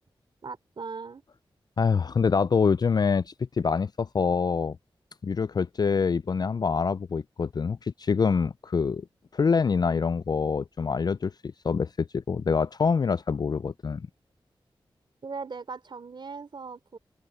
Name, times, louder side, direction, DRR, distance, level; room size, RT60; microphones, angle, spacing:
voice 1, 0.4-1.2 15.2-17.0, right 4 dB, 60° right, 3.3 m, -39 dB
voice 2, 1.8-4.8 5.2-9.1 9.3-11.3 11.6-14.1, left 5 dB, 45° left, 0.4 m, -25 dB
open air
cardioid pair, 60°, 9 cm